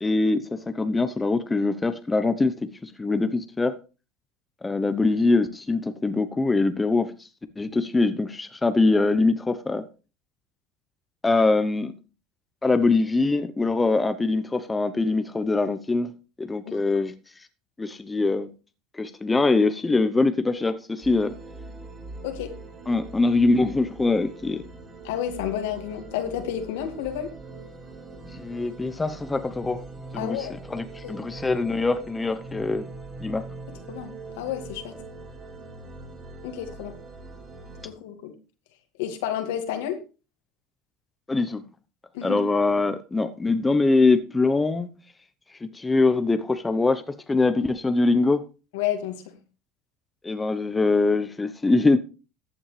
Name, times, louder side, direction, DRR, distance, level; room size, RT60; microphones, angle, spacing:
voice 1, 0.0-3.8 4.6-7.1 7.6-9.8 11.2-11.9 12.6-16.1 16.4-17.1 17.8-18.5 18.9-21.3 22.9-24.6 28.3-29.8 30.1-32.9 33.2-33.4 41.3-41.6 42.2-44.9 45.7-48.4 50.2-52.0, left 3 dB, 15° left, 0.9 m, -23 dB
sound 1, 21.0-37.9, right 3 dB, 35° right, 4.5 m, -42 dB
voice 2, 25.0-27.3 30.2-30.6 31.0-31.2 33.9-34.1 34.4-35.0 36.4-36.9 37.8-38.3 39.0-40.0 42.1-42.4 48.7-49.2, left 10 dB, 80° left, 2.1 m, -30 dB
14.5 x 8.7 x 3.4 m
hypercardioid pair, 90°, 0 cm